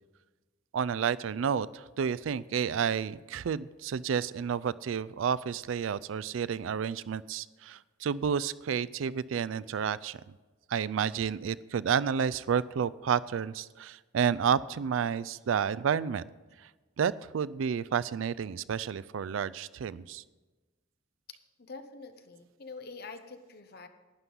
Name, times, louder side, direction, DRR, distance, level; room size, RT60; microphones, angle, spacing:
voice 1, 0.7-10.2 10.7-16.2 16.6-16.7 17.0-20.2, right 7 dB, 85° right, 19 dB, 0.4 m, -30 dB
voice 2, 21.6-23.9, left 3 dB, 55° left, 8 dB, 0.9 m, -45 dB
11.5 x 9.7 x 5.4 m, 1.2 s
head